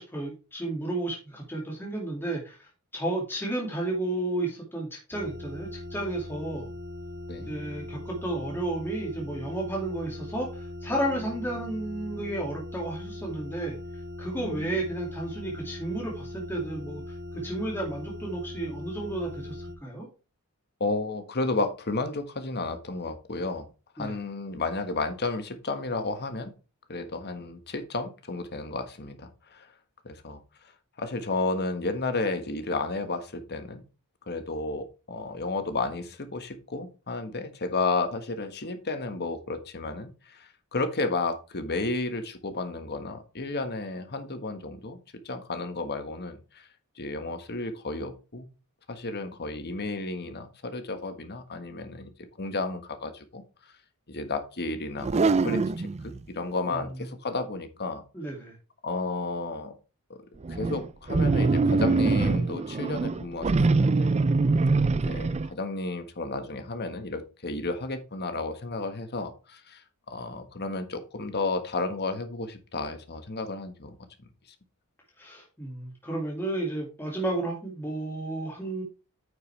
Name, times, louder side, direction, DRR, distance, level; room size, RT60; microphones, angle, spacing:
voice 1, 0.0-6.7 7.4-13.8 14.2-20.1 24.0-24.2 56.7-56.9 58.1-58.6 75.2-78.8, right 1 dB, 10° left, -2 dB, 2.3 m, -32 dB
sound 1, 5.1-19.7, left 1 dB, 60° right, 2.9 m, -40 dB
voice 2, 14.3-14.8 20.8-23.7 24.0-26.5 26.9-29.7 30.0-30.4 31.0-33.8 34.3-45.0 45.2-46.7 47.0-48.5 48.9-52.1 52.4-53.4 54.1-58.0 58.8-59.7 60.1-60.2 60.5-64.1 64.9-69.8 70.1-74.0, left 3 dB, 50° left, 9 dB, 1.5 m, -32 dB
sound 2, 55.0-56.2 60.4-65.5, right 3 dB, 30° right, 0.4 m, -24 dB
9.3 x 6.7 x 3.3 m, 0.32 s
head